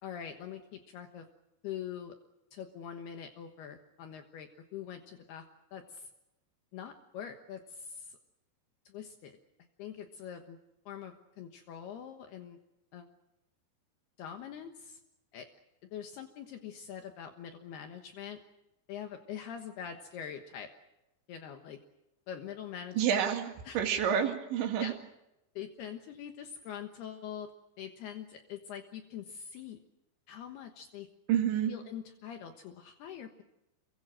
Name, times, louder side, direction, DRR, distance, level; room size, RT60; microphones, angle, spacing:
voice 1, 0.0-1.3 1.6-2.2 2.5-5.4 5.7-6.1 6.7-8.2 8.9-9.4 9.8-10.6 10.9-12.6 12.9-13.1 14.2-15.0 15.3-15.5 15.8-18.4 18.9-20.7 21.3-21.8 22.3-23.0 23.6-23.8 24.8-24.9 25.6-27.5 27.8-29.8 30.3-31.1 31.7-33.4, left 8 dB, 70° left, 6 dB, 3.1 m, -44 dB
voice 2, 23.0-24.9 31.3-31.7, right 9 dB, 85° right, 2 dB, 4.4 m, -29 dB
28.0 x 23.5 x 6.4 m, 0.90 s
omnidirectional pair, 5.2 m